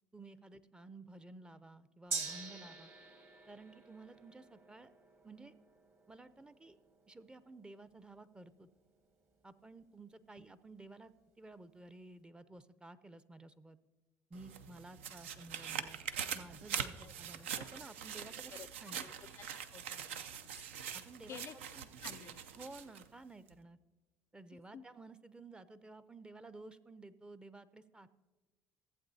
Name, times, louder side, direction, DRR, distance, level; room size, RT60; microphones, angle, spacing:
voice 1, 0.1-2.9 3.5-4.9 5.2-5.6 6.1-6.8 7.1-8.7 9.4-13.8 14.3-16.0 16.3-18.5 18.8-19.0 20.9-21.4 21.7-21.9 22.5-23.8 24.3-28.1, right 2 dB, 15° right, 15 dB, 0.5 m, -53 dB
Gong, 2.1-9.9 10.2-10.3, right 4 dB, 40° right, 1.2 m, -47 dB
sound 1, 14.3-23.1 23.5-23.6, right 8 dB, 90° right, 0.4 m, -43 dB
voice 2, 18.9-20.3 21.3-21.6 22.0-22.4 24.7-24.9, left 8 dB, 45° left, 15 dB, 0.4 m, -52 dB
15.0 x 7.9 x 2.7 m, 1.2 s
hypercardioid pair, 70°, 6 cm